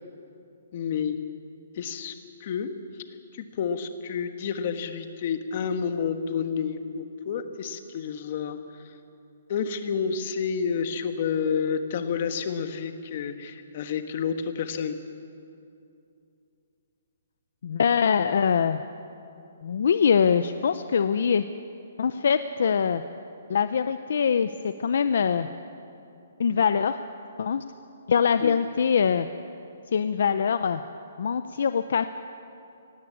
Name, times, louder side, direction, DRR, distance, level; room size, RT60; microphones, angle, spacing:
voice 1, 0.7-1.2 1.7-2.1 2.4-2.7 3.3-8.6 8.8-8.9 9.5-15.0 28.4-28.5, left 6 dB, 35° left, 8 dB, 1.3 m, -29 dB
voice 2, 17.6-18.8 19.6-21.4 22.0-23.0 23.5-25.5 26.4-26.9 27.4-27.6 28.1-29.3 29.9-30.8 31.2-32.1, left 7 dB, 60° left, 11 dB, 0.6 m, -23 dB
18.0 x 16.5 x 8.7 m, 2.7 s
hypercardioid pair, 170°, 0 cm